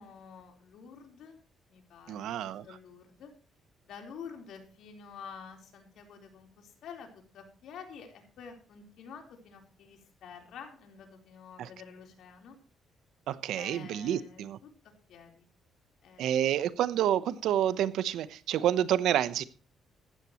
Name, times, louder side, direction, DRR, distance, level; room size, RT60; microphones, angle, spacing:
voice 1, 0.0-1.4 1.7-2.3 2.6-3.3 3.8-12.6 13.6-14.7 15.1-15.5 16.0-16.5, left 6 dB, 75° left, 4.0 m, -49 dB
voice 2, 2.1-2.7 11.6-11.7 13.3-14.6 16.2-19.4, right 11 dB, 80° right, 0.9 m, -29 dB
15.5 x 12.0 x 3.1 m
cardioid pair, 90°, 0 cm